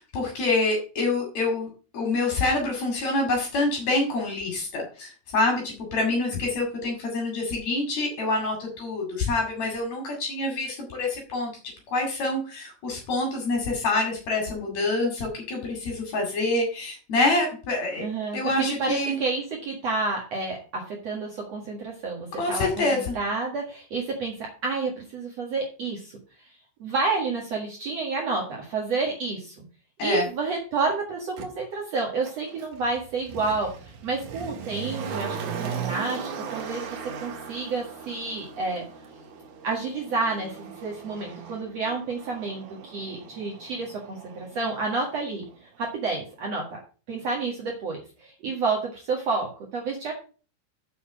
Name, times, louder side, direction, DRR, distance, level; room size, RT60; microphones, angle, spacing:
voice 1, 0.0-1.7 1.9-11.5 11.9-18.0 18.3-19.2 22.4-23.1 30.0-30.3, left 2 dB, 45° left, 1 dB, 2.7 m, -26 dB
voice 2, 18.0-26.1 26.8-29.6 30.0-33.7 34.0-36.9 37.2-38.8 39.6-45.5 45.8-46.8 47.1-50.1, right 3 dB, 90° right, -1 dB, 1.4 m, -30 dB
Motor vehicle (road), 31.4-31.5 32.2-45.1 45.4-45.5, right 6 dB, 65° right, 2.6 m, -38 dB
7.1 x 7.0 x 6.2 m, 0.37 s
omnidirectional pair, 5.9 m